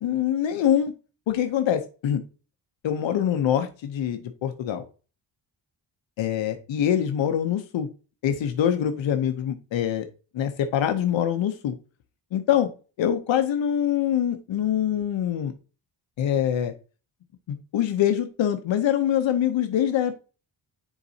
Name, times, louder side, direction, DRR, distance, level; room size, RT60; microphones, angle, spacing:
voice 1, 0.0-0.9 1.3-2.2 2.8-4.8 6.2-7.9 8.2-10.1 10.3-11.7 12.3-12.7 13.0-15.5 16.2-16.7 17.5-20.2, left 10 dB, 85° left, 7 dB, 0.8 m, -24 dB
9.8 x 4.0 x 2.7 m, 0.34 s
wide cardioid pair, 145°, 44 cm